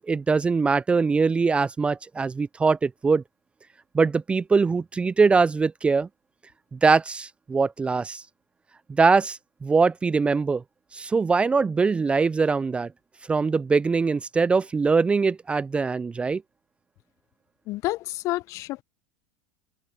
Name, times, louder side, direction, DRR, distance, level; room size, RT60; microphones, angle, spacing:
voice 1, 0.0-3.2 3.9-6.1 6.7-8.2 8.9-10.6 10.9-12.9 13.3-16.4, right 4 dB, 15° right, 0.5 m, -22 dB
voice 2, 17.7-18.8, left 18 dB, 50° left, 0.9 m, -29 dB
open air
hypercardioid pair, 85°, 7 cm